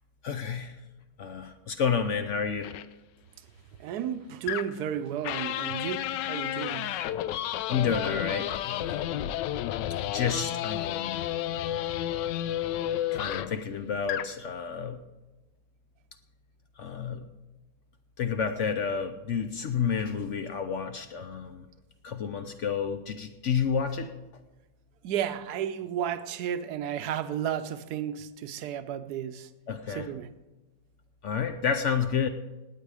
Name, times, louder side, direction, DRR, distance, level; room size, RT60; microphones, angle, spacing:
voice 1, 0.2-0.8 1.2-2.7 7.7-9.2 10.1-11.2 13.1-15.0 16.8-17.3 18.2-21.7 22.0-24.1 29.7-30.1 31.2-32.3, left 6 dB, 65° left, 0.7 m, -30 dB
sound 1, 2.6-2.9 4.5-4.9 5.2-13.6 14.0-14.4, left 12 dB, 85° left, 1.2 m, -31 dB
voice 2, 3.8-7.1 25.0-29.5 29.9-30.3, right 9 dB, 70° right, 1.2 m, -33 dB
18.5 x 8.5 x 4.8 m
omnidirectional pair, 1.9 m